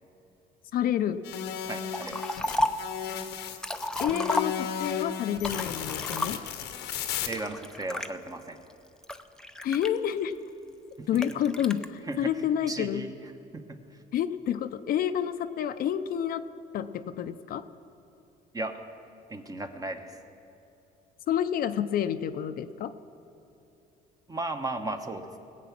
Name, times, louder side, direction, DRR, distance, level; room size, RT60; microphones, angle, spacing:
voice 1, 0.7-1.2 4.0-6.4 9.6-10.4 11.1-13.0 14.1-16.4 16.7-17.6 21.3-22.9, left 9 dB, 60° left, 10 dB, 0.6 m, -29 dB
sound 1, 1.2-7.3, left 9 dB, 85° left, 1.0 m, -34 dB
voice 2, 1.7-2.7 7.3-8.6 11.0-11.2 12.1-12.3 12.7-13.1 13.5-13.8 18.5-18.8 19.3-20.2 24.3-25.4, right 2 dB, 20° right, 6 dB, 1.1 m, -36 dB
Liquid, 1.9-2.9 3.4-4.9 5.4-6.6 7.3-8.1 8.7-10.4 11.1-11.9, left 1 dB, 5° left, 0.6 m, -32 dB
20.0 x 8.3 x 6.0 m, 2.8 s
cardioid pair, 110°, 17 cm